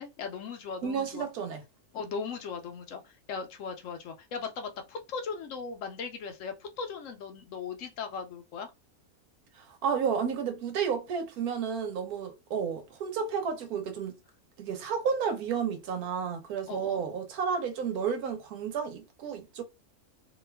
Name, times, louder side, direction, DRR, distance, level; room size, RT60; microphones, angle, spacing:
voice 1, 0.0-1.2 1.9-8.7 16.7-17.0, left 5 dB, 70° left, 0.9 m, -38 dB
voice 2, 0.8-1.6 9.5-14.2 14.6-19.6, right 6 dB, 85° right, 1.2 m, -31 dB
2.9 x 2.3 x 3.2 m
omnidirectional pair, 1.5 m